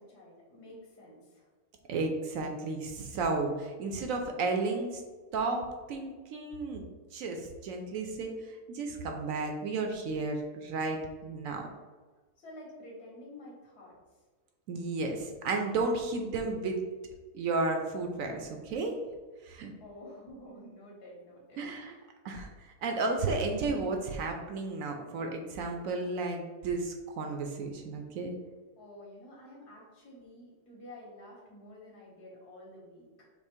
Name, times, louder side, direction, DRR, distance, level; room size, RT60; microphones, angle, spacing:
voice 1, 0.0-1.5 12.4-13.9 19.8-22.0 28.8-33.2, left 1 dB, 85° left, -3 dB, 1.9 m, -50 dB
voice 2, 1.9-5.0 5.3-6.8 7.1-11.7 14.7-16.8 17.3-18.9 19.4-19.7 21.6-21.9 22.2-22.5 22.8-28.3, right 3 dB, 70° right, 3 dB, 0.9 m, -33 dB
5.6 x 2.0 x 4.4 m, 1.3 s
omnidirectional pair, 1.6 m